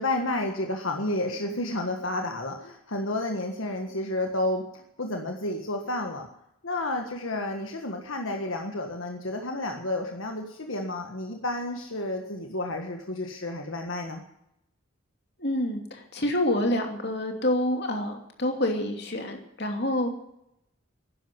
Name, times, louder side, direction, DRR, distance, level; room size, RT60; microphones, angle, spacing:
voice 1, 0.0-6.3 6.6-14.2, left 2 dB, 75° left, 3 dB, 1.6 m, -31 dB
voice 2, 15.4-20.1, left 1 dB, 50° left, 3 dB, 2.8 m, -27 dB
11.5 x 11.0 x 9.7 m, 0.81 s
head